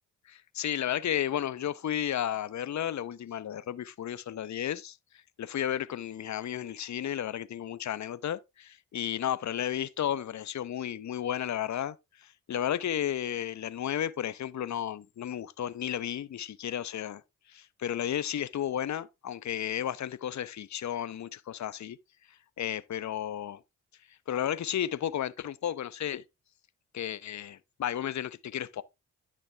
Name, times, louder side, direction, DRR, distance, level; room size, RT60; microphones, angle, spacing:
voice 1, 0.3-5.0 5.4-17.2 17.5-22.0 22.6-23.6 24.3-26.2 26.9-28.8, left 10 dB, 50° left, 0.8 m, -33 dB
10.5 x 6.2 x 3.4 m
hypercardioid pair, 45°, 36 cm